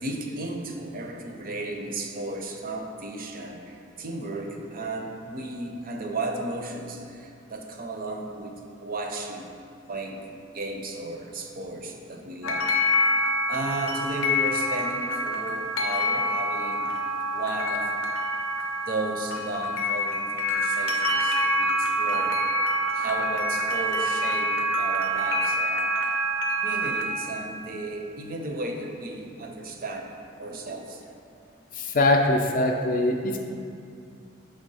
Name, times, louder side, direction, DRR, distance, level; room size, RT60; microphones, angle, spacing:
voice 1, 0.0-9.5 9.9-10.2 10.5-12.7 13.5-16.9 17.3-17.9 18.9-22.4 22.9-25.9 26.6-30.1 30.4-31.0, right 2 dB, 40° right, 3 dB, 0.5 m, -34 dB
sound 1, 12.4-27.1, equal, 80° left, 0.6 m, -26 dB
voice 2, 31.7-33.5, left 2 dB, 40° left, 3 dB, 0.4 m, -22 dB
5.4 x 3.3 x 5.3 m, 2.4 s
head